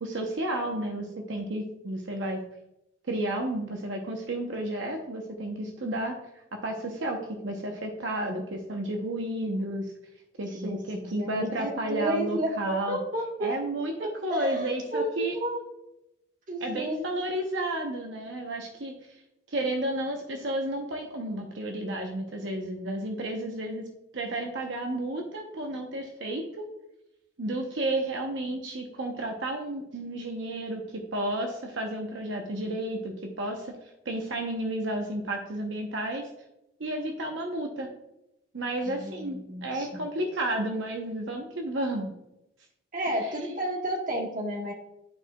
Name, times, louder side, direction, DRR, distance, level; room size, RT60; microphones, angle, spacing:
voice 1, 0.0-2.4 3.1-9.9 10.4-13.0 13.4-15.3 16.6-18.9 19.5-23.8 24.1-26.7 27.4-30.8 31.1-33.8 34.0-36.3 36.8-37.9 38.5-42.1 43.2-43.3, right 1 dB, 75° right, 2 dB, 0.8 m, -32 dB
voice 2, 10.5-13.6 14.0-15.6 16.5-17.1 38.8-39.9 42.9-44.7, right 1 dB, 45° right, 1 dB, 1.2 m, -32 dB
11.0 x 4.6 x 2.2 m, 0.88 s
head